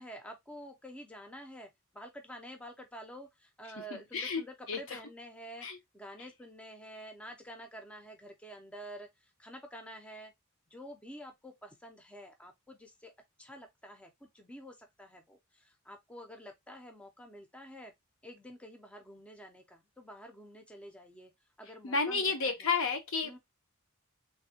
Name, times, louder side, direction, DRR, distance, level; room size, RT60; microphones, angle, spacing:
voice 1, 0.0-5.7 5.9-10.3 10.7-13.1 13.4-17.9 18.2-21.3 21.6-22.7 23.2-23.4, equal, 5° left, 0.4 m, -49 dB
voice 2, 21.8-23.4, left 4 dB, 65° left, 0.7 m, -31 dB
3.3 x 2.1 x 2.7 m
head